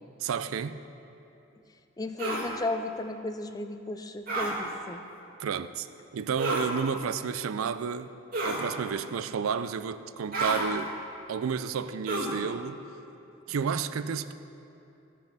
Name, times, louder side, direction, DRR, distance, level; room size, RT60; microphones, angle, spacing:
voice 1, 0.2-0.8 5.4-5.9 6.1-8.1 8.4-10.9 11.3-12.8 13.5-14.3, right 6 dB, 85° right, 13 dB, 0.4 m, -31 dB
voice 2, 2.0-5.0, left 2 dB, 20° left, 8 dB, 0.4 m, -34 dB
sound 1, 2.2-2.5 4.3-4.5 6.4-6.7 8.3-8.7 10.3-10.6 12.1-12.4, right 2 dB, 45° right, 1.8 m, -30 dB
15.5 x 5.4 x 6.0 m, 2.8 s
head